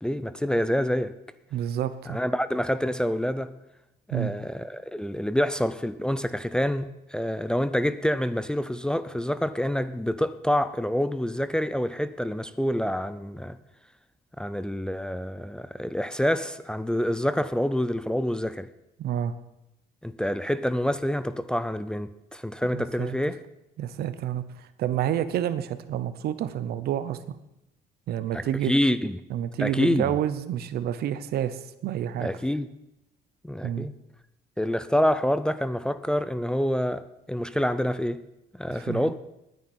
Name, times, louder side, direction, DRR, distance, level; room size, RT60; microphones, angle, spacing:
voice 1, 0.0-1.1 2.1-3.5 4.1-13.6 14.4-18.7 20.0-23.4 28.3-29.2 29.6-30.2 32.2-32.7 33.4-33.9 34.6-38.2 38.5-39.1, equal, 5° left, 0.6 m, -27 dB
voice 2, 1.5-2.2 4.1-4.3 19.0-19.3 22.7-23.2 23.8-27.4 28.1-28.7 29.3-32.3 33.6-33.9 38.7-39.0, right 10 dB, 70° right, 0.9 m, -29 dB
19.5 x 9.6 x 4.5 m
cardioid pair, 110°, 17 cm